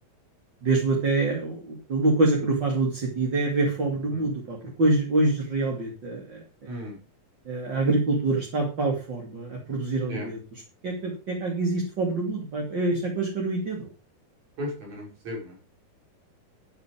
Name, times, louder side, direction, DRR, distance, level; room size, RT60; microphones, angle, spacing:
voice 1, 0.6-6.4 7.4-13.9, right 2 dB, 30° right, 0 dB, 2.9 m, -26 dB
voice 2, 6.7-7.0 10.1-10.3 14.6-15.6, left 1 dB, 45° right, -1 dB, 7.2 m, -35 dB
11.0 x 10.5 x 5.3 m, 0.33 s
omnidirectional pair, 4.5 m